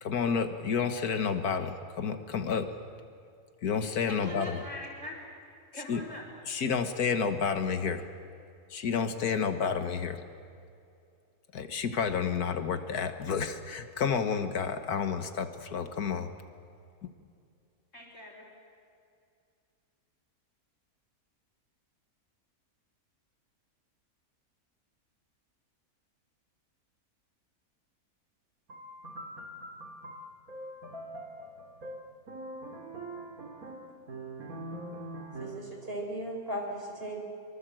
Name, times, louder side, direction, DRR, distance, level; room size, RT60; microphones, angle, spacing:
voice 1, 0.0-2.7 3.6-4.6 5.7-6.0 6.5-8.0 8.7-10.2 11.5-16.3 17.0-17.1, left 6 dB, 80° left, 8 dB, 1.8 m, -30 dB
voice 2, 4.1-5.2 5.7-6.2 17.9-18.5, left 1 dB, 55° left, -2 dB, 4.8 m, -42 dB
sound 1, 28.7-35.8, right 1 dB, 70° right, 2.6 m, -43 dB
voice 3, 35.4-37.2, right 1 dB, 40° right, 2 dB, 4.6 m, -37 dB
24.5 x 23.5 x 7.7 m, 2.4 s
omnidirectional pair, 1.6 m